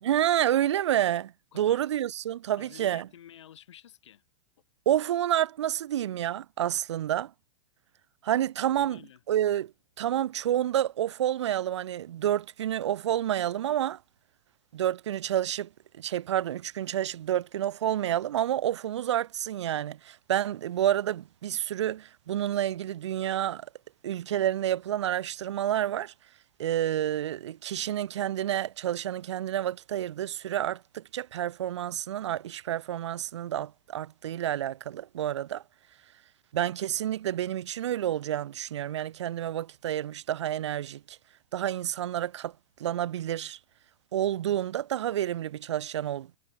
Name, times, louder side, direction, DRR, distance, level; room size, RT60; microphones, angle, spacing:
voice 1, 0.0-3.1 4.8-7.3 8.2-9.0 9.3-14.0 14.7-23.7 24.0-26.1 26.6-35.6 36.5-41.2 41.5-43.6 44.1-46.4, right 11 dB, 75° right, 1.5 m, -29 dB
voice 2, 1.5-1.8 2.6-4.2 8.7-9.2, left 10 dB, 80° left, 7.7 m, -51 dB
supercardioid pair, 180°, 15 cm